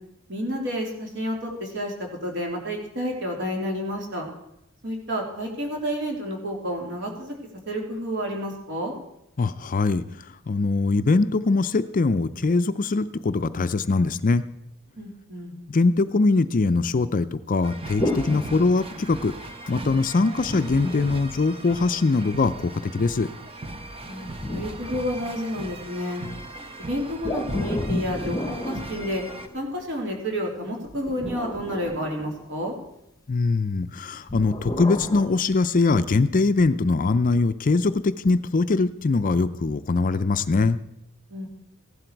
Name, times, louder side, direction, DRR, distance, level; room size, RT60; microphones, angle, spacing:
voice 1, 0.3-4.3 4.8-7.3 7.7-8.9 15.0-15.6 24.0-26.2 26.8-29.2 29.5-32.7 41.3-41.5, equal, 55° right, 0 dB, 3.1 m, -30 dB
voice 2, 9.4-14.4 15.7-19.3 19.7-23.3 33.3-40.8, left 3 dB, 40° left, 12 dB, 0.5 m, -22 dB
sound 1, 17.6-29.5, right 2 dB, 25° right, 0.9 m, -39 dB
sound 2, 18.0-19.4 20.4-22.0 23.7-25.7 27.2-29.8 30.9-32.8 34.3-35.3, left 1 dB, 15° left, 0.9 m, -32 dB
15.5 x 11.5 x 4.6 m, 0.81 s
head